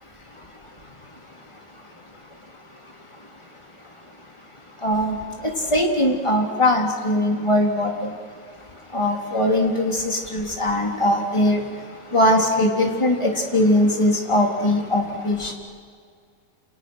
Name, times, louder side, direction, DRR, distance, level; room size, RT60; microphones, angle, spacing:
voice 1, 4.8-8.2 8.9-15.5, left 1 dB, 10° left, 1 dB, 3.1 m, -21 dB
30.0 x 29.0 x 6.4 m, 2.1 s
omnidirectional pair, 3.6 m